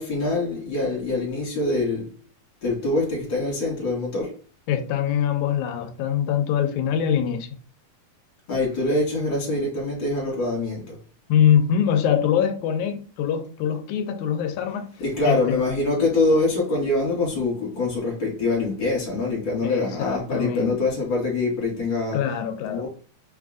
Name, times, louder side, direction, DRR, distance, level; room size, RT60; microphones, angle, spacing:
voice 1, 0.0-2.1 2.6-4.4 8.5-11.0 15.0-22.2 22.6-22.9, left 2 dB, 40° left, 2.3 m, -24 dB
voice 2, 4.7-7.5 11.3-14.9 15.2-15.6 19.6-20.7 22.1-22.9, left 9 dB, 80° left, 2.0 m, -23 dB
4.6 x 3.5 x 2.4 m
omnidirectional pair, 3.5 m